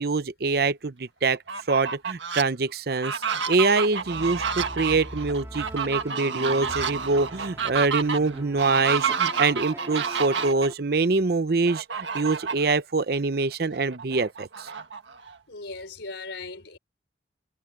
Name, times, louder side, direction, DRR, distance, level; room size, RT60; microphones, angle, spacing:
voice 1, 0.0-1.4 1.7-3.2 3.5-14.7, right 3 dB, 55° right, 0.7 m, -24 dB
Fowl, 1.3-2.4 2.9-10.7 11.7-12.7 13.2-13.3 13.6-15.4, right 6 dB, 85° right, 1.7 m, -30 dB
sound 1, 4.0-10.7, equal, 15° right, 3.7 m, -42 dB
voice 2, 15.5-16.8, left 3 dB, 85° left, 4.3 m, -38 dB
head